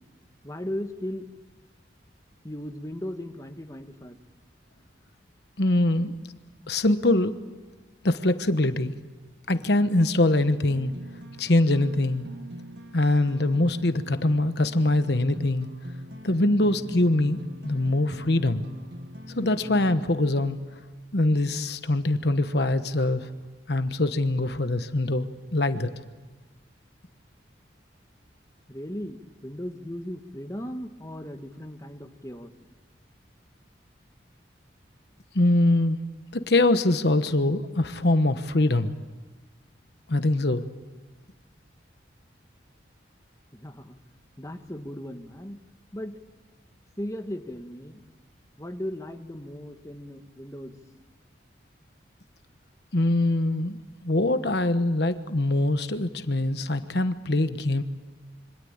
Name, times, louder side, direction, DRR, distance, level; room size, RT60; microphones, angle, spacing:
voice 1, 0.4-1.3 2.4-4.2 28.7-32.5 43.5-43.9 44.4-45.6 45.9-46.2 47.0-48.0 48.6-50.8, equal, 15° left, 5 dB, 1.5 m, -37 dB
voice 2, 5.6-6.1 6.7-7.3 8.0-8.9 9.5-10.9 11.4-12.3 12.9-15.7 16.2-18.6 19.3-20.6 21.1-23.3 23.7-25.3 25.5-25.9 35.3-36.0 36.3-38.9 40.1-40.6 52.9-53.8 54.0-57.8, left 2 dB, 60° left, 10 dB, 1.2 m, -23 dB
sound 1, 10.5-20.5, left 1 dB, 65° right, 1.7 m, -43 dB
27.0 x 25.0 x 8.8 m, 1.3 s
head